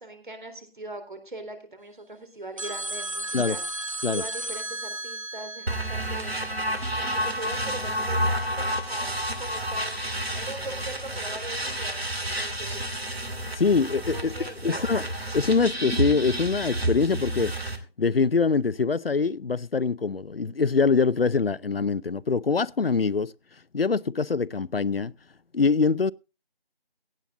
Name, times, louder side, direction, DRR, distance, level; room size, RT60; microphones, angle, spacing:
voice 1, 0.0-3.6 4.1-6.3 7.0-12.8 14.1-14.9, right 2 dB, 55° right, 3.8 m, -41 dB
sound 1, 2.6-6.9, right 2 dB, 35° right, 0.8 m, -35 dB
sound 2, 5.7-17.8, right 1 dB, 80° right, 2.7 m, -30 dB
voice 2, 13.5-14.3 14.6-15.1 15.3-17.5 18.0-23.3 23.7-25.1 25.5-26.1, left 4 dB, 70° left, 0.6 m, -24 dB
16.5 x 9.0 x 3.8 m
figure-of-eight pair, 170°, 30 cm